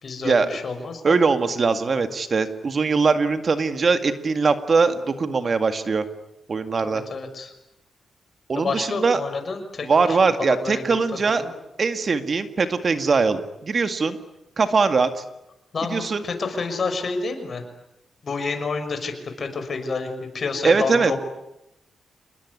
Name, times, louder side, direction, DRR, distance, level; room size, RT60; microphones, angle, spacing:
voice 1, 0.0-1.1 6.8-7.5 8.5-10.8 11.3-11.5 15.7-17.6 18.2-21.2, left 4 dB, 50° left, 7 dB, 6.1 m, -29 dB
voice 2, 1.0-6.0 6.5-7.0 8.5-9.2 9.8-11.4 11.8-14.2 14.6-15.1 15.9-16.2 20.6-21.1, right 4 dB, 45° right, 9 dB, 2.0 m, -21 dB
28.0 x 21.0 x 9.7 m, 0.87 s
cardioid pair, 95°, 0 cm